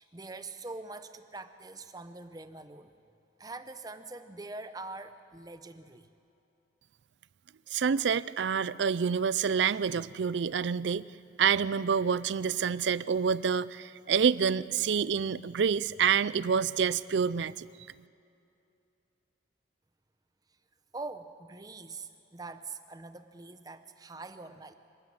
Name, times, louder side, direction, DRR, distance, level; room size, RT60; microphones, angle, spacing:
voice 1, 0.0-2.9 3.4-6.1 20.9-24.7, right 3 dB, 20° right, 10 dB, 0.8 m, -44 dB
voice 2, 7.7-11.0 11.4-17.7, right 6 dB, 75° right, 18 dB, 0.4 m, -27 dB
25.5 x 12.5 x 8.8 m, 2.7 s
head